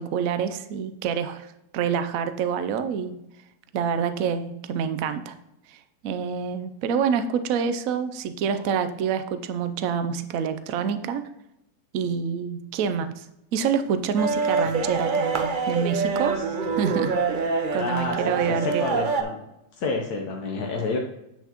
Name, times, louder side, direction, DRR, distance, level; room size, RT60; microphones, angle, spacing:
voice 1, 0.0-3.2 3.7-5.3 5.7-11.2 11.9-13.3 13.5-16.4 16.8-17.1 17.7-18.8, right 7 dB, 70° right, 10 dB, 1.0 m, -27 dB
sound 1, 14.2-19.2, right 4 dB, 45° right, 0.7 m, -26 dB
voice 2, 17.8-19.4 19.7-21.0, left 3 dB, 90° left, 0 dB, 1.4 m, -29 dB
8.0 x 6.9 x 2.9 m, 0.85 s
omnidirectional pair, 1.6 m